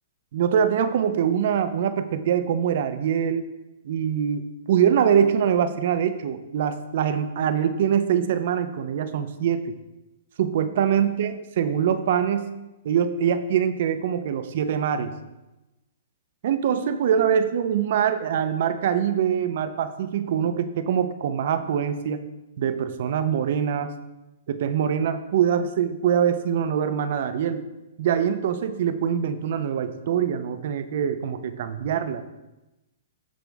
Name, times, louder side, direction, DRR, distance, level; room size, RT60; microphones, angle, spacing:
voice 1, 0.3-3.5 3.8-9.7 10.4-12.5 12.8-15.1 16.4-22.2 22.6-23.9 24.5-27.6 28.0-32.2, right 8 dB, 60° right, 11 dB, 0.8 m, -24 dB
14.0 x 5.2 x 3.5 m, 1.0 s
hypercardioid pair, 150°, 0 cm